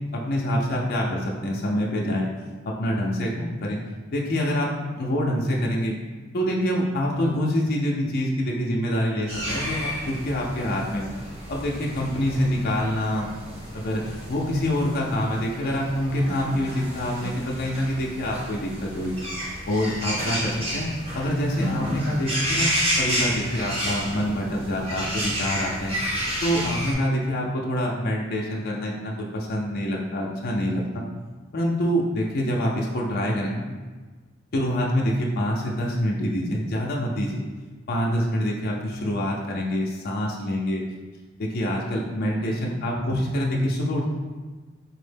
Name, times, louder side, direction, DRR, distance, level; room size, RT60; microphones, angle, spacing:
voice 1, 0.1-2.3 2.6-3.8 4.1-4.7 4.9-6.0 6.3-11.1 11.5-13.3 13.7-14.0 14.3-19.2 19.7-20.9 21.1-26.0 26.4-31.1 31.5-33.6 34.5-37.4 37.9-40.8 41.4-44.1, equal, 50° left, -2 dB, 0.5 m, -26 dB
sound 1, 9.3-26.9, equal, 30° right, 0.9 m, -30 dB
4.3 x 2.1 x 3.3 m, 1.3 s
head